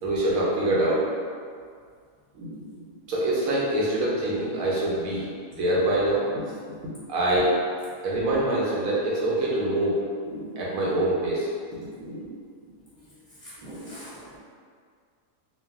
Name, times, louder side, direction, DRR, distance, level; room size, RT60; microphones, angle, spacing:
voice 1, 0.0-1.1 2.3-2.8 3.1-5.2 5.5-6.2 7.1-7.6 8.0-10.0 10.2-11.5 12.0-12.3 13.6-13.8, right 1 dB, 75° right, -5 dB, 1.1 m, -25 dB
voice 2, 13.1-14.4, left 1 dB, 20° left, -14 dB, 1.3 m, -44 dB
3.2 x 2.3 x 2.3 m, 2.1 s
omnidirectional pair, 1.5 m